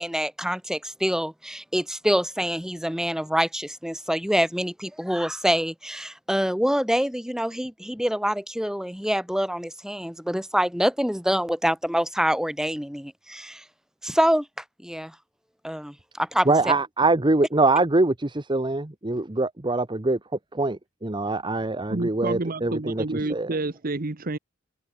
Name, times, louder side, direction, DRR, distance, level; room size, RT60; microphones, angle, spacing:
voice 1, 0.0-13.6 14.0-15.2 15.6-16.5, equal, 5° right, 3.6 m, -26 dB
voice 2, 16.4-20.2 20.5-23.5, right 2 dB, 25° right, 1.1 m, -23 dB
voice 3, 21.9-24.4, right 2 dB, 45° right, 1.0 m, -29 dB
head